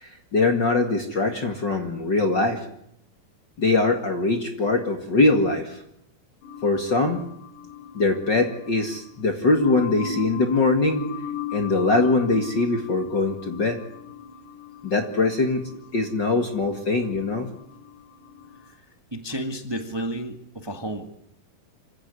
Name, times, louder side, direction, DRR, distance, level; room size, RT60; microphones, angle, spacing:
voice 1, 0.0-2.7 3.6-5.8 6.6-7.3 7.9-11.0 11.5-13.8 14.8-15.6 15.9-17.5, left 3 dB, 35° left, 5 dB, 2.2 m, -22 dB
sound 1, 6.4-18.7, left 6 dB, 70° left, 3.4 m, -39 dB
voice 2, 19.1-21.0, right 1 dB, 30° right, 6 dB, 0.4 m, -32 dB
26.0 x 16.0 x 9.7 m, 0.74 s
omnidirectional pair, 4.2 m